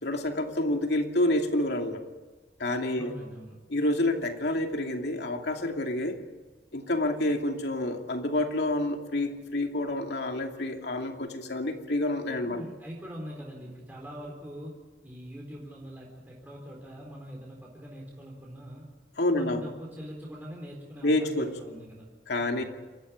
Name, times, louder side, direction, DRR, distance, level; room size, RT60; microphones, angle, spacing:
voice 1, 0.0-2.1 2.6-3.1 3.7-6.2 6.7-12.6 19.2-19.6 21.0-21.5 22.3-22.6, left 1 dB, 70° left, 4 dB, 2.7 m, -28 dB
voice 2, 3.0-3.6 12.4-14.7 15.0-18.9 19.3-22.1 22.4-22.6, equal, 10° right, -3 dB, 4.3 m, -43 dB
27.5 x 15.0 x 8.7 m, 1.3 s
head